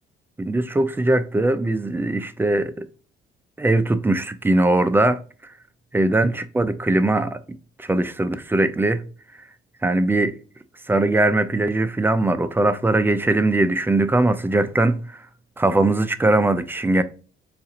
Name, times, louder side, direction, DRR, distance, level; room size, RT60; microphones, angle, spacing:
voice 1, 0.4-2.9 3.6-5.2 5.9-7.4 7.8-9.0 9.8-10.4 10.9-15.3 15.6-17.0, right 2 dB, 10° right, 0.3 m, -20 dB
4.0 x 2.4 x 2.7 m
cardioid pair, 90°, 20 cm